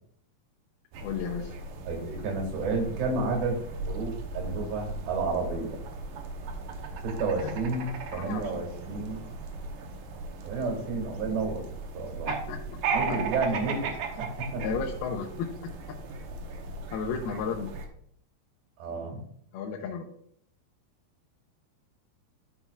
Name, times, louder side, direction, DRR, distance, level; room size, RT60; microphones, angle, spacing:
sound 1, 0.9-17.9, right 4 dB, 70° right, 2.3 m, -37 dB
voice 1, 1.0-1.5 7.4-7.5 8.1-8.6 12.3-12.8 13.1-13.3 14.6-15.5 16.9-17.8 19.5-20.1, left 6 dB, 80° left, 1 dB, 2.7 m, -33 dB
voice 2, 1.9-5.8 7.0-9.2 10.4-11.6 11.9-12.3 12.9-14.8 18.8-19.2, right 3 dB, 85° right, 1 dB, 4.1 m, -31 dB
13.5 x 5.6 x 2.4 m, 0.65 s
omnidirectional pair, 4.7 m